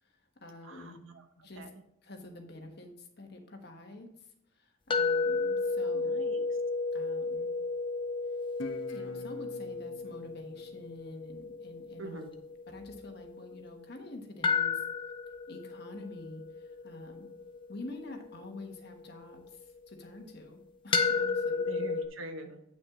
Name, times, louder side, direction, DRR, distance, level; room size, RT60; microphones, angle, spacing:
voice 1, 0.0-1.0 1.4-1.6 2.0-4.1 4.5-6.3 6.9-7.5 8.9-12.3 12.7-14.8 15.5-17.3 17.7-21.8, left 2 dB, 50° left, 3 dB, 1.3 m, -47 dB
voice 2, 0.6-1.7 5.9-6.4 12.0-12.3 21.7-22.6, right 2 dB, 75° right, 6 dB, 1.0 m, -44 dB
sound 1, 4.9-13.8 14.4-19.6 20.9-22.1, left 4 dB, 25° left, 0.6 m, -33 dB
Guitar, 8.6-11.8, left 2 dB, 75° left, 1.0 m, -47 dB
8.5 x 6.0 x 3.7 m, 0.78 s
head